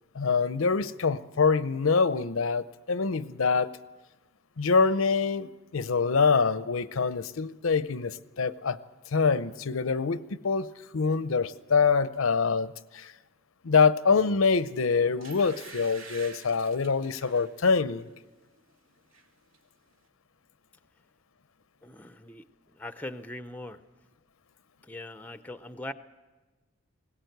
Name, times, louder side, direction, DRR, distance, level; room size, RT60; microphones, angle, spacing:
voice 1, 0.1-3.7 4.6-8.8 9.1-13.1 13.6-18.1, left 5 dB, 85° left, 15 dB, 0.6 m, -25 dB
sound 1, 14.5-14.7 15.2-17.5 18.0-18.2 18.5-19.3 19.5-19.6, right 4 dB, 80° right, 2.4 m, -48 dB
voice 2, 21.8-22.5 22.7-23.8 24.8-25.9, left 1 dB, 10° left, 11 dB, 0.6 m, -40 dB
21.0 x 17.5 x 8.0 m, 1.2 s
head